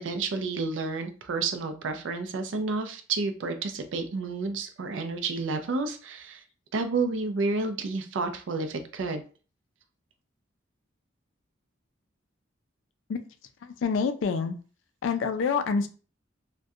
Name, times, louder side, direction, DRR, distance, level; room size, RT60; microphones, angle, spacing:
voice 1, 0.0-6.4 6.7-9.2, right 3 dB, 75° right, 7 dB, 0.4 m, -30 dB
voice 2, 13.6-14.6 15.0-15.9, left 5 dB, 75° left, 8 dB, 0.3 m, -27 dB
2.6 x 2.2 x 2.3 m, 0.37 s
head